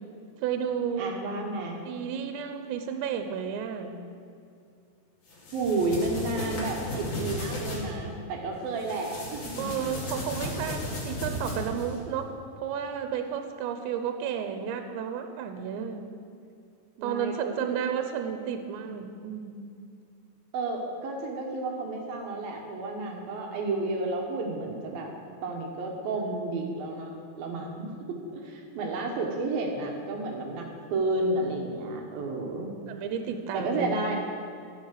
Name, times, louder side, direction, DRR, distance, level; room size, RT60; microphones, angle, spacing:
voice 1, 0.4-1.2 1.8-4.0 9.6-12.3 12.6-16.1 17.0-19.7 32.9-34.0, right 7 dB, 80° right, 7 dB, 3.0 m, -32 dB
voice 2, 1.0-1.8 5.5-9.7 17.0-17.8 20.5-25.1 25.4-27.1 27.4-27.9 28.3-32.7 33.5-34.2, right 2 dB, 65° right, 1 dB, 2.6 m, -31 dB
sound 1, 5.3-7.8 8.8-12.0, left 1 dB, 40° left, 3.0 m, -35 dB
15.5 x 7.5 x 6.5 m, 2.5 s
omnidirectional pair, 5.1 m